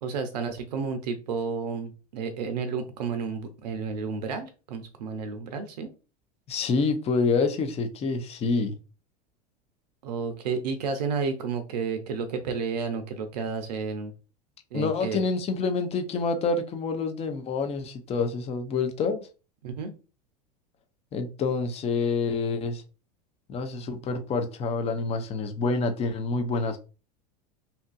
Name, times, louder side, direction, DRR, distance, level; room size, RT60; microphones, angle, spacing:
voice 1, 0.0-5.9 10.0-14.1 14.7-15.3 19.6-20.0, right 5 dB, 80° right, 8 dB, 0.5 m, -31 dB
voice 2, 6.5-8.8 14.7-19.3 21.1-22.8 23.5-26.8, left 4 dB, 30° left, 7 dB, 0.5 m, -27 dB
2.7 x 2.5 x 2.3 m, 0.33 s
hypercardioid pair, 90°, 20 cm